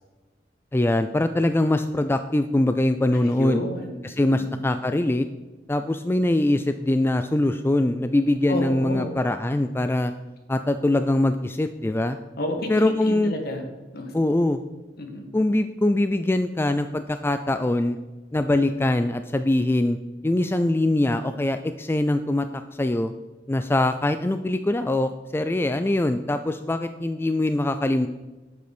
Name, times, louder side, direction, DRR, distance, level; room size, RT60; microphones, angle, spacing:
voice 1, 0.7-3.6 4.0-5.3 5.7-10.1 10.5-12.2 12.7-13.3 14.1-14.6 15.3-18.0 18.3-20.0 20.2-23.1 23.5-28.1, left 1 dB, 15° left, 9 dB, 0.4 m, -23 dB
voice 2, 3.2-4.7 8.5-9.2 12.4-13.6 13.9-14.1 15.0-15.3, left 1 dB, 60° left, 3 dB, 2.0 m, -30 dB
11.5 x 8.3 x 4.4 m, 1.2 s
head